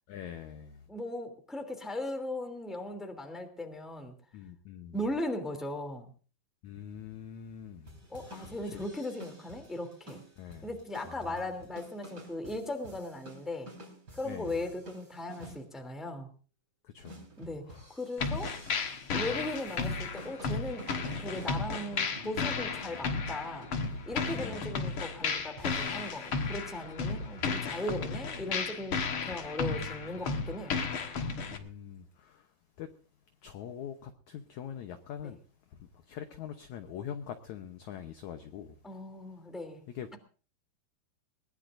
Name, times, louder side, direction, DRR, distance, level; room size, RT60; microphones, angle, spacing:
voice 1, 0.1-0.8 4.3-5.0 6.6-8.0 8.3-8.8 10.4-10.7 11.0-11.5 14.2-14.6 16.8-17.3 17.7-17.9 19.1-19.3 21.5-21.8 24.3-24.7 29.7-30.0 31.5-32.5 32.8-32.9 33.4-35.4 35.7-39.0 39.9-40.1, left 9 dB, 75° left, 1.7 m, -44 dB
voice 2, 0.9-4.1 4.9-6.1 8.1-10.2 10.6-13.7 14.1-16.3 17.4-18.5 19.1-20.9 21.2-23.7 24.0-30.8 35.2-35.3 38.8-39.8, left 1 dB, ahead, 2.1 m, -38 dB
sound 1, 7.9-15.6 17.0-24.7 25.4-26.8 27.2-27.6, right 1 dB, 25° right, 4.7 m, -50 dB
sound 2, 18.2-31.6, left 5 dB, 55° left, 1.5 m, -34 dB
21.5 x 19.0 x 2.6 m
omnidirectional pair, 4.5 m